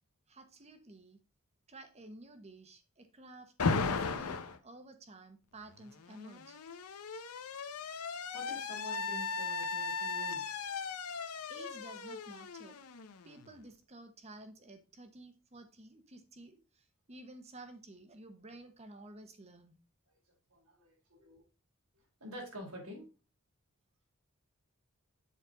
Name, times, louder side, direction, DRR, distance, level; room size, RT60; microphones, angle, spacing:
voice 1, 0.3-1.2 1.7-3.5 3.8-6.6 11.5-12.8 13.2-19.8, right 2 dB, 30° right, 8 dB, 1.0 m, -53 dB
Alarm, 3.6-4.6 5.8-13.5, left 4 dB, 90° left, 0.7 m, -37 dB
voice 2, 8.3-10.5 20.5-21.4 22.2-23.1, equal, 85° right, -1 dB, 3.8 m, -48 dB
7.4 x 4.2 x 5.1 m, 0.34 s
head